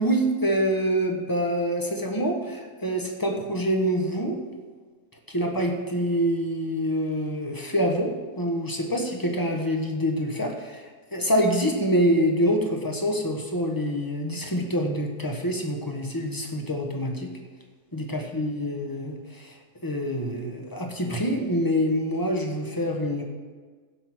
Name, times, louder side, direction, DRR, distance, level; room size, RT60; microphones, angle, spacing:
voice 1, 0.0-4.4 5.3-17.3 17.9-19.5 19.8-23.2, equal, 15° left, 2 dB, 1.2 m, -26 dB
15.5 x 5.9 x 6.2 m, 1.5 s
omnidirectional pair, 1.7 m